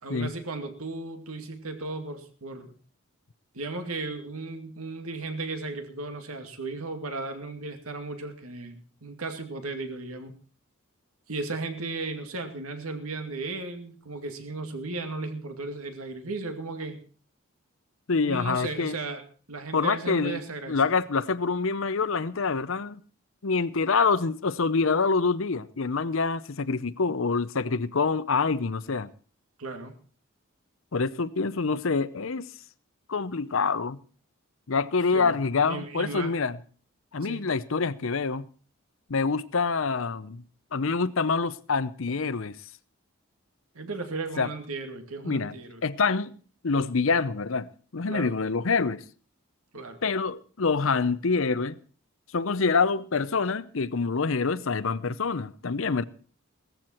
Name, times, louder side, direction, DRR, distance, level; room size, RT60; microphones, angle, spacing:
voice 1, 0.0-2.7 3.5-10.3 11.3-17.0 18.2-19.2 19.5-20.8 29.6-29.9 35.1-35.4 35.7-36.3 37.2-37.5 43.7-45.8 48.1-48.3 49.7-50.0, right 3 dB, 90° right, 2.3 m, -35 dB
voice 2, 18.1-19.0 19.7-20.4 20.7-23.0 23.4-29.1 30.9-32.5 33.1-34.0 34.7-36.6 37.1-38.5 39.1-40.4 40.7-42.5 44.4-44.5 45.2-45.5 45.8-46.3 46.6-49.0 50.0-51.8 52.3-56.0, left 4 dB, 70° left, 0.7 m, -26 dB
16.5 x 14.0 x 4.4 m
head